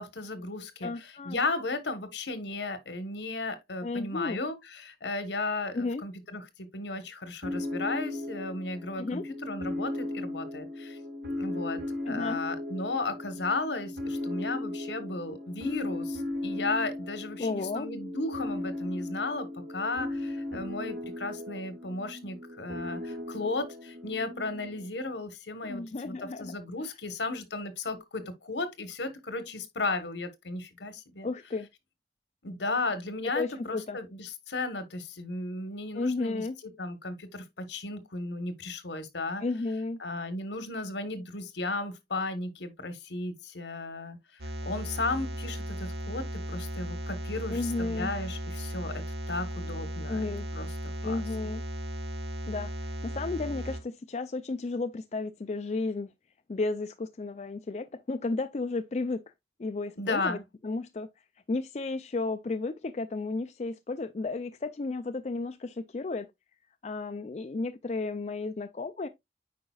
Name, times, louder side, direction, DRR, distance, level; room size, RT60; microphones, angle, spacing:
voice 1, 0.0-11.0 11.4-11.8 12.1-31.3 32.4-36.4 36.8-39.4 40.0-50.2 50.5-50.7 51.0-51.2 60.0-60.4, left 3 dB, 80° left, 1.2 m, -35 dB
voice 2, 0.8-1.4 3.8-4.4 5.7-6.0 9.0-9.2 12.1-12.4 17.4-17.9 25.6-26.5 31.2-31.7 33.3-34.0 35.9-36.6 39.4-40.0 47.5-48.1 50.1-50.5 51.0-51.6 52.5-56.1 56.5-59.2 59.6-60.4 60.6-61.1 61.5-66.3 66.8-69.1, left 3 dB, 40° left, 0.4 m, -33 dB
sound 1, 7.4-24.9, left 1 dB, 85° right, 2.1 m, -37 dB
sound 2, 44.4-53.8, equal, 70° right, 1.2 m, -36 dB
8.7 x 5.1 x 2.3 m
head